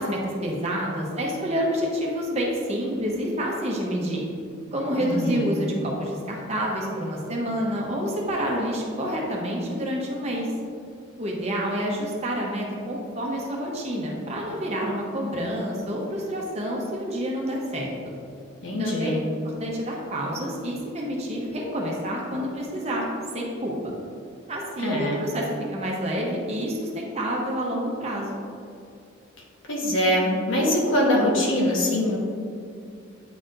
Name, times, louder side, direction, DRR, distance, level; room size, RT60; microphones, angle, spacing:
voice 1, 0.0-4.2 4.7-10.5 11.2-17.9 18.8-19.1 19.6-23.0 23.3-23.7 24.5-25.5 25.7-28.4, equal, 30° right, -2 dB, 0.9 m, -28 dB
voice 2, 5.0-5.5 18.6-19.2 24.8-25.2 29.7-32.2, left 1 dB, 70° left, -3 dB, 1.3 m, -23 dB
9.2 x 4.2 x 2.5 m, 2.5 s
head